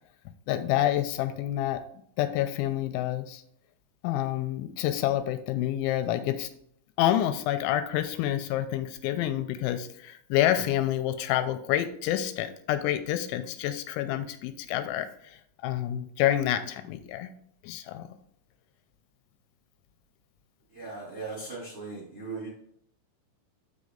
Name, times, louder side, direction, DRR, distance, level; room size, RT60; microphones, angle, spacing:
voice 1, 0.5-1.8 2.2-3.4 4.0-6.5 7.0-17.3 17.6-18.1, left 12 dB, 85° left, 9 dB, 2.9 m, -28 dB
voice 2, 20.7-22.5, right 3 dB, 20° right, -5 dB, 1.9 m, -38 dB
8.1 x 5.2 x 3.7 m, 0.69 s
omnidirectional pair, 5.4 m